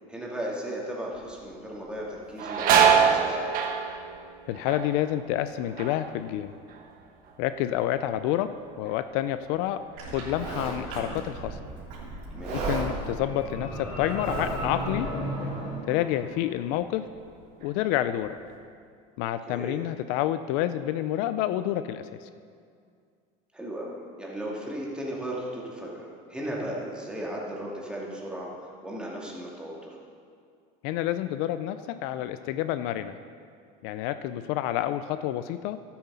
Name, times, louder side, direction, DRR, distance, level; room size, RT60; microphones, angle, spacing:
voice 1, 0.1-3.5 12.3-12.7 19.5-19.8 23.5-28.5 28.8-29.7, right 1 dB, 5° right, -4 dB, 2.5 m, -36 dB
sound 1, 1.2-1.5 1.9-7.5 7.8-8.4 8.9-11.8 12.1-12.2 13.2-13.4 13.8-15.0 15.4-15.6 16.2-16.8 17.1-18.3, right 7 dB, 50° right, 1.5 m, -27 dB
voice 2, 4.5-6.5 7.4-8.5 8.8-11.6 12.5-15.1 15.9-17.1 17.6-18.4 19.2-22.3 30.8-33.2 33.8-35.8, left 12 dB, 70° left, 11 dB, 0.5 m, -29 dB
Livestock farm animals working animals, 10.0-15.0, right 3 dB, 75° right, 3.1 m, -35 dB
sound 2, 12.9-17.0, left 1 dB, 30° left, 2.8 m, -35 dB
12.0 x 8.6 x 5.6 m, 2.2 s
supercardioid pair, 125°, 19 cm